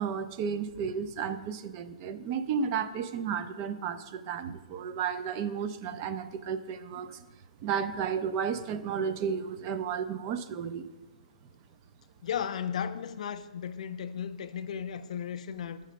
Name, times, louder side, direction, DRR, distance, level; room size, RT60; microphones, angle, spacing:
voice 1, 0.0-7.2 7.6-10.9, right 7 dB, 30° right, 0.4 m, -33 dB
voice 2, 12.2-15.8, left 8 dB, 65° left, 0.4 m, -35 dB
6.6 x 5.3 x 5.1 m
hypercardioid pair, 150°, 4 cm